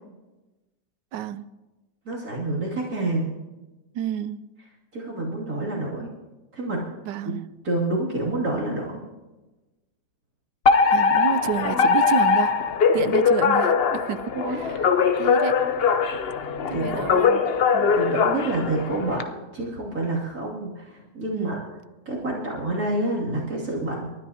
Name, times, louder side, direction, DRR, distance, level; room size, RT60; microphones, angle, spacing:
voice 1, 1.1-1.4 3.9-4.4 7.1-7.4 10.9-12.6 12.9-14.8 15.2-15.7 16.7-17.4 17.7-18.0 21.3-21.6, right 9 dB, 90° right, 1.3 m, -30 dB
voice 2, 2.0-3.3 4.9-6.1 6.5-6.9 7.6-9.0 12.9-13.1 14.3-14.6 16.7-16.9 17.9-21.6 22.1-24.1, right 2 dB, 55° right, 3.1 m, -28 dB
Alarm, 10.6-19.2, left 5 dB, 55° left, 0.6 m, -21 dB
28.5 x 13.0 x 2.8 m
omnidirectional pair, 1.9 m